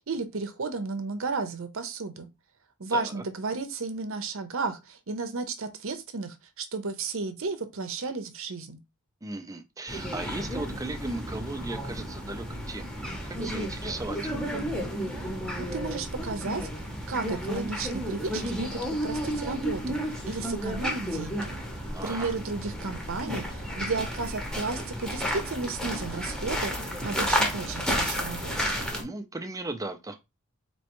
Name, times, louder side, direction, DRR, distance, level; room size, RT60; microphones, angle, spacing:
voice 1, 0.1-2.3 2.8-8.8 15.6-16.7 17.1-20.0 20.3-21.5 22.0-26.7 27.0-28.8, right 3 dB, 65° right, 0.7 m, -33 dB
voice 2, 2.9-3.2 9.2-12.9 13.2-14.3 21.9-22.3 29.0-30.2, right 2 dB, 15° right, 0.5 m, -36 dB
sound 1, 9.9-29.0, equal, 5° left, 0.8 m, -32 dB
4.4 x 3.0 x 3.0 m
head